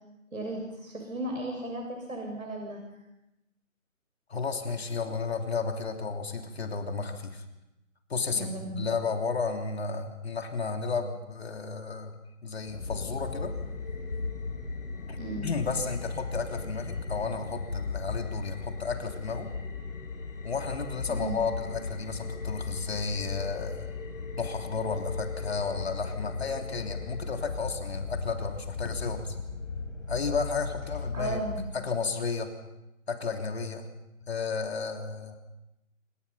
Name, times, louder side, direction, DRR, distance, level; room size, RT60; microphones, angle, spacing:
voice 1, 0.3-2.8 8.3-8.9 15.1-15.5 21.1-21.4 31.1-31.7, right 1 dB, 85° right, 1 dB, 6.8 m, -35 dB
voice 2, 4.3-7.4 8.1-12.1 12.4-13.5 15.1-15.2 15.4-19.5 20.4-23.9 24.4-29.3 30.1-31.4 31.7-32.5 33.1-33.9 34.3-35.4, left 4 dB, 50° left, 4 dB, 3.2 m, -33 dB
sound 1, 12.6-31.6, left 4 dB, 70° left, 4.3 m, -36 dB
28.0 x 26.5 x 5.7 m, 0.92 s
figure-of-eight pair, 160°, 40 cm